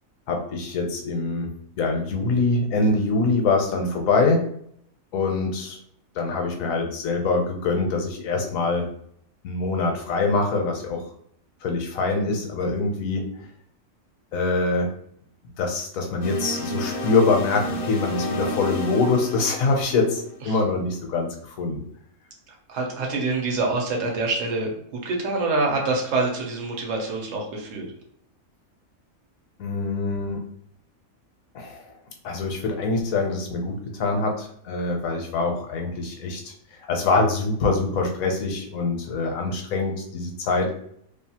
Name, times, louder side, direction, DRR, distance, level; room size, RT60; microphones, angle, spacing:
voice 1, 0.3-4.4 5.1-5.8 6.1-8.9 9.4-11.0 11.6-13.5 14.3-14.9 15.6-21.8 29.6-30.4 31.5-31.8 32.2-36.5 36.9-40.7, left 3 dB, 80° left, 2 dB, 1.0 m, -24 dB
sound 1, 16.2-20.6, left 1 dB, 60° left, 0.6 m, -31 dB
voice 2, 22.5-27.9, right 3 dB, 70° right, 0 dB, 1.0 m, -26 dB
2.7 x 2.3 x 2.8 m, 0.67 s
omnidirectional pair, 1.4 m